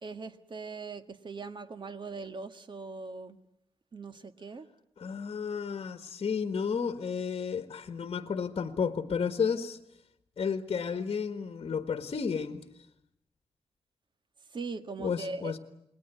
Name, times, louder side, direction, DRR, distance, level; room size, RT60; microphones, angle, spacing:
voice 1, 0.0-3.4 3.9-4.7 14.5-15.6, right 3 dB, 50° right, 10 dB, 1.7 m, -40 dB
voice 2, 5.0-9.8 10.4-12.6 15.0-15.6, left 6 dB, 60° left, 9 dB, 1.6 m, -32 dB
29.0 x 21.5 x 9.3 m, 0.79 s
wide cardioid pair, 105°, 10 cm